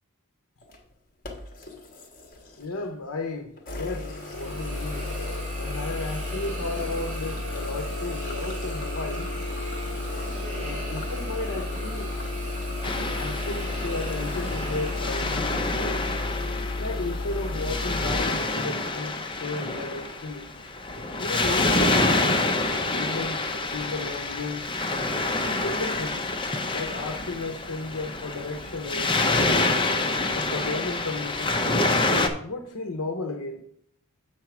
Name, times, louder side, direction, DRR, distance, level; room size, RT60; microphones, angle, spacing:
sound 1, 0.6-0.8 1.2-2.8 3.6-18.2, left 2 dB, 40° left, 1.4 m, -33 dB
voice 1, 2.6-5.1 5.6-9.3 10.5-12.1 12.9-16.1 16.8-20.5 21.2-24.6 25.3-26.3 26.7-29.8 30.3-31.7 32.4-33.6, left 2 dB, 70° left, 6 dB, 0.8 m, -34 dB
Hiss, 3.8-15.9, right 1 dB, 35° right, 3.4 m, -39 dB
Waves surf, 12.8-32.3, left 2 dB, 25° left, 0.7 m, -27 dB
7.7 x 4.5 x 5.9 m, 0.68 s
head